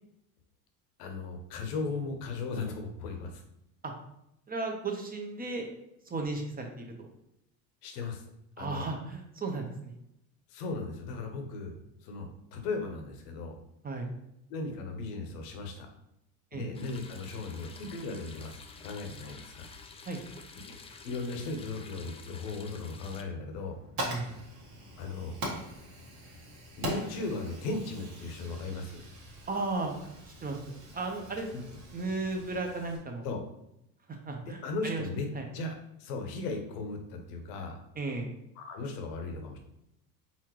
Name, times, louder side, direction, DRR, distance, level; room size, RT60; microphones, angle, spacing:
voice 1, 1.0-3.4 7.8-8.2 8.6-8.9 10.5-13.5 14.5-15.9 16.5-19.7 20.6-20.7 21.0-23.8 25.0-25.4 26.8-29.0 31.5-31.6 33.2-33.4 34.4-35.3 35.5-37.8 38.6-39.6, left 3 dB, 85° left, 4 dB, 1.0 m, -37 dB
voice 2, 4.5-5.7 6.1-7.1 8.6-9.9 13.8-14.1 16.5-16.7 20.1-20.2 24.0-24.4 29.5-30.0 30.4-31.5 31.9-33.3 34.2-35.0 35.3-35.4 38.0-38.3, right 3 dB, 20° right, 3 dB, 0.9 m, -35 dB
sound 1, 16.7-23.2, left 4 dB, 15° left, 0.3 m, -50 dB
Fire, 23.5-33.0, right 1 dB, 70° right, 1.7 m, -42 dB
4.3 x 3.7 x 3.1 m, 0.81 s
supercardioid pair, 95°, 45 cm